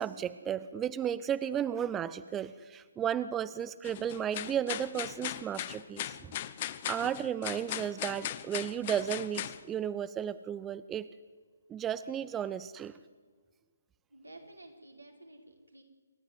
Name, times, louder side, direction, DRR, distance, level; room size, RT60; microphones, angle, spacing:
voice 1, 0.0-6.3 6.9-11.1 11.7-12.9, right 9 dB, 15° right, 16 dB, 0.6 m, -34 dB
sound 1, 3.8-9.6, left 12 dB, 35° left, 1.0 m, -38 dB
voice 2, 14.1-15.8, right 1 dB, 90° right, 2 dB, 5.1 m, -52 dB
28.0 x 12.0 x 9.7 m, 1.5 s
figure-of-eight pair, 140°, 0 cm